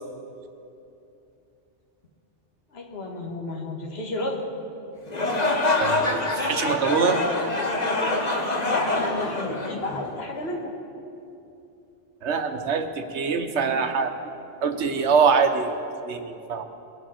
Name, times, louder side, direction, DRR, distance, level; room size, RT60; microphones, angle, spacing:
voice 1, 2.7-4.4 8.7-10.7, left 2 dB, 65° left, 1 dB, 1.7 m, -32 dB
sound 1, 5.1-10.3, left 2 dB, 40° left, 1.3 m, -25 dB
voice 2, 5.8-7.2 12.2-14.1 14.6-15.7 16.0-16.6, right 5 dB, 75° right, 7 dB, 1.2 m, -24 dB
21.0 x 7.7 x 5.7 m, 2.7 s
omnidirectional pair, 1.2 m